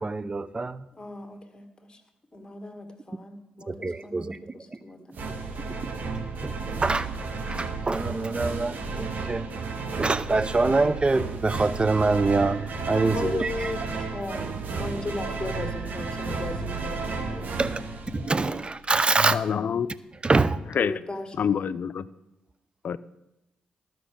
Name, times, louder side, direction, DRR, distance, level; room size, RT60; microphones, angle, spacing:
voice 1, 0.0-0.8 3.7-4.4 6.4-6.5 6.8-7.1 7.4-9.4 9.9-13.5 17.6-17.8 18.1-19.6 20.2-20.6, right 3 dB, 30° right, 15 dB, 0.7 m, -25 dB
voice 2, 1.0-2.0 2.3-5.2 12.9-17.8 20.8-21.7, left 2 dB, 25° left, 4 dB, 2.1 m, -37 dB
sound 1, 5.1-18.8, right 4 dB, 60° right, 1.3 m, -33 dB
voice 3, 19.2-19.9 20.8-20.9 21.4-22.0 22.8-23.0, left 7 dB, 55° left, 16 dB, 0.5 m, -27 dB
13.0 x 6.0 x 6.5 m, 0.92 s
hypercardioid pair, 40°, 3 cm